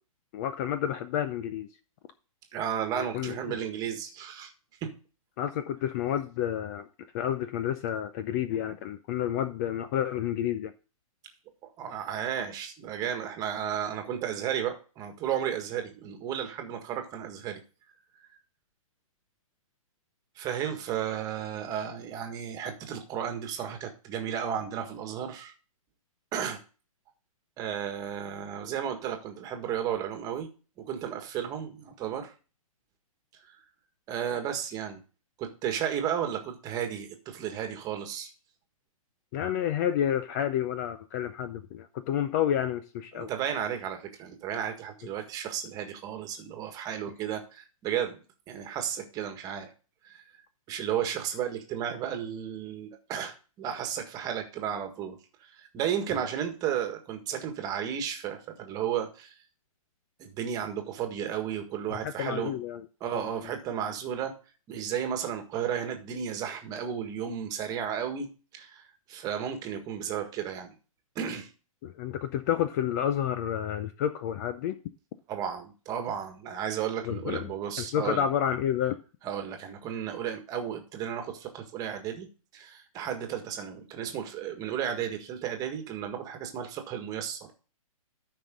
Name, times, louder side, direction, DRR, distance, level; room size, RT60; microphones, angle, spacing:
voice 1, 0.3-1.7 2.9-3.6 5.4-6.9 7.1-10.7 39.3-43.3 62.2-62.9 63.1-63.3 71.8-74.8 77.0-77.5 77.8-79.0, left 10 dB, 30° left, 11 dB, 0.5 m, -30 dB
voice 2, 2.5-4.5 4.8-5.0 11.6-17.6 20.4-25.5 26.3-26.6 27.6-30.5 30.8-32.3 34.1-35.0 35.4-38.3 43.1-48.2 48.5-49.7 50.0-50.2 50.7-55.2 55.6-59.3 60.2-62.6 63.0-64.4 64.7-70.7 71.1-71.5 75.3-78.2 79.2-87.5, right 9 dB, 20° right, 5 dB, 1.6 m, -33 dB
13.0 x 5.5 x 3.7 m, 0.35 s
hypercardioid pair, 155°, 18 cm